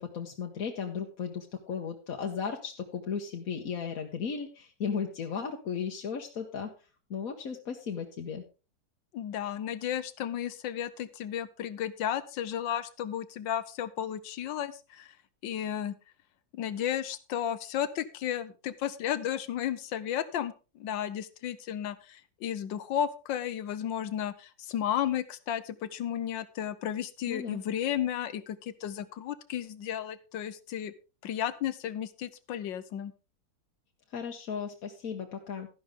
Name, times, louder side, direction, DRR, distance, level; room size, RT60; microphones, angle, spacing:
voice 1, 0.0-6.7 7.1-8.4 27.3-27.6 34.1-35.7, left 6 dB, 55° left, 2 dB, 1.4 m, -35 dB
voice 2, 9.1-15.1 15.4-15.9 16.5-30.9 31.2-33.1, left 10 dB, 90° left, 14 dB, 1.6 m, -33 dB
12.5 x 11.0 x 3.7 m, 0.32 s
omnidirectional pair, 2.0 m